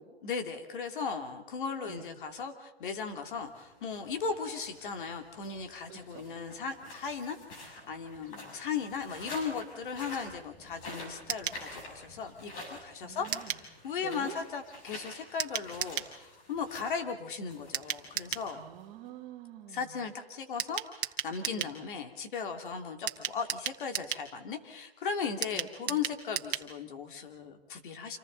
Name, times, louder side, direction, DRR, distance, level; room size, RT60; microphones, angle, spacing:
voice 1, 0.2-18.6 19.7-28.2, left 5 dB, 55° left, 5 dB, 2.9 m, -37 dB
sound 1, 3.3-19.1, left 1 dB, 35° left, 7.4 m, -49 dB
voice 2, 5.9-6.3 13.0-13.6 14.0-14.4 18.5-20.0 21.5-21.7 25.5-26.0, right 12 dB, 25° right, 1 dB, 3.0 m, -47 dB
sound 2, 11.3-11.6 13.3-13.7 15.4-16.1 17.7-18.5 20.6-21.8 23.1-24.3 25.4-26.7 27.0-27.1 27.3-27.4, right 9 dB, 55° right, 1.8 m, -35 dB
29.0 x 26.5 x 4.0 m, 0.97 s
hypercardioid pair, 145°, 31 cm